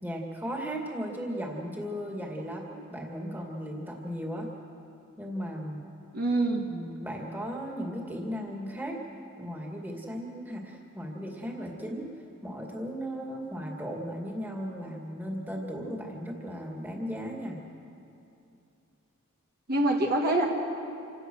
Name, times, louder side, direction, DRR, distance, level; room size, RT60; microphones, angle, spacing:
voice 1, 0.0-4.5 5.2-5.8 6.6-9.0 9.4-12.1 12.4-17.6, equal, 10° right, 0 dB, 2.2 m, -36 dB
voice 2, 6.1-6.7 19.7-20.5, right 2 dB, 45° right, 1 dB, 1.5 m, -25 dB
27.5 x 17.0 x 6.4 m, 2.8 s
head